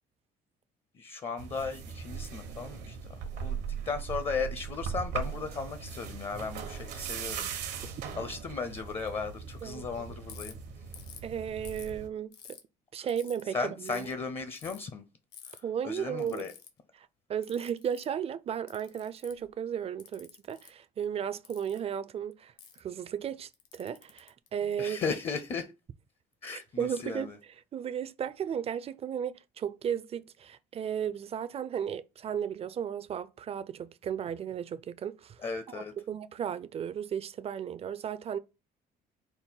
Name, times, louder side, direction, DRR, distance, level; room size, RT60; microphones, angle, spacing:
voice 1, 0.9-3.6 3.8-7.5 8.2-10.5 13.5-15.0 15.5-16.5 24.8-25.7 26.4-27.4 35.4-35.9, left 5 dB, 35° left, 0.6 m, -36 dB
sound 1, 1.4-12.1, right 6 dB, 85° right, 1.0 m, -39 dB
voice 2, 9.6-10.1 11.2-12.6 12.9-14.1 15.6-16.5 17.0-22.5 22.8-25.0 26.5-27.3 27.7-35.4 35.7-38.4, right 8 dB, 35° right, 0.4 m, -35 dB
Ratchet pawl, 10.3-10.5 10.9-11.3 11.7-12.6 13.1-13.4 13.8-14.1 14.6-14.8 15.3-15.6 16.2-16.7 17.4-18.1 18.7-19.5 20.0-20.7 21.4-21.8 22.6-22.8 23.5-25.0, left 8 dB, 80° left, 1.0 m, -50 dB
5.4 x 2.1 x 4.5 m
cardioid pair, 110°, 17 cm